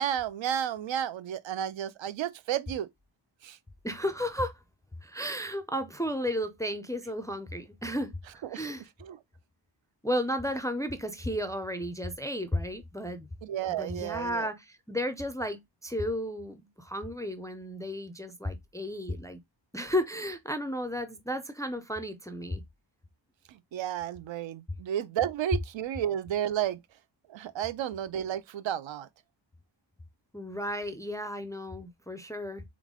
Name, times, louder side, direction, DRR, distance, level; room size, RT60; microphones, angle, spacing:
voice 1, 0.0-2.9 3.4-3.6 8.5-8.6 9.0-9.2 13.4-14.5 23.5-26.8 27.3-29.1, right 10 dB, 80° right, 0.6 m, -32 dB
voice 2, 3.8-4.6 5.0-8.1 8.5-8.9 10.0-13.3 13.8-19.4 19.7-22.6 30.3-32.6, equal, 10° left, 0.3 m, -33 dB
3.9 x 3.6 x 3.6 m
wide cardioid pair, 180°, 45 cm